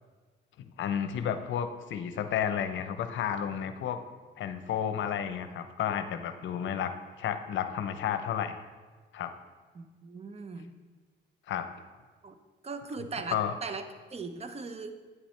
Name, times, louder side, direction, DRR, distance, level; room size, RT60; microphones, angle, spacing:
voice 1, 0.6-4.0 4.4-6.9 7.2-8.6 9.1-9.3 11.5-11.7 13.3-13.5, left 9 dB, 70° left, 9 dB, 0.7 m, -32 dB
voice 2, 9.7-10.8 12.2-12.4 12.6-13.8 14.1-15.0, right 4 dB, 30° right, 9 dB, 0.7 m, -39 dB
9.3 x 8.5 x 3.3 m, 1.4 s
cardioid pair, 90°, 20 cm